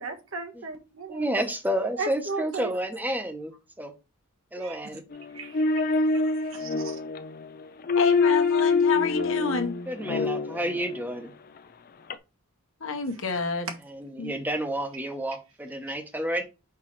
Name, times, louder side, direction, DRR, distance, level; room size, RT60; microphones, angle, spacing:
voice 1, 0.0-1.2 2.0-2.7 4.5-4.8 5.3-7.0 13.3-13.4, right 3 dB, 70° right, 1.3 m, -37 dB
voice 2, 1.1-3.9 4.5-5.0 9.9-11.3 13.8-16.4, right 1 dB, 10° right, 0.8 m, -30 dB
sound 1, 5.1-11.1 12.1-12.2, left 4 dB, 45° left, 0.5 m, -25 dB
voice 3, 7.9-9.7 12.8-13.7 14.2-14.3, left 4 dB, 65° left, 1.1 m, -28 dB
5.8 x 5.3 x 3.1 m
head